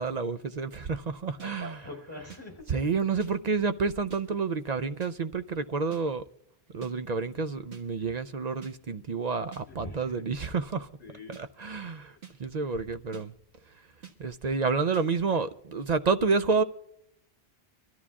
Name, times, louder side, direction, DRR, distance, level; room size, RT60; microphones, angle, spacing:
voice 1, 0.0-1.8 2.7-6.2 6.7-10.9 11.4-13.3 14.2-16.6, right 4 dB, 50° right, 0.6 m, -29 dB
voice 2, 1.4-2.6 9.1-9.2 9.5-10.2 11.0-11.4 12.2-12.4, left 1 dB, 25° left, 4.2 m, -44 dB
sound 1, 1.4-1.5 2.3-2.4 3.2-3.3 4.1-4.2 5.0-5.1 5.9-6.0 6.8-6.9 7.7-7.8 8.6-8.7 9.5-9.6 10.4-10.5 11.3-11.4 12.2-12.3 13.1-13.2 14.0-14.1 14.9-15.0, right 9 dB, 90° right, 1.9 m, -46 dB
24.5 x 13.5 x 2.3 m
omnidirectional pair, 1.1 m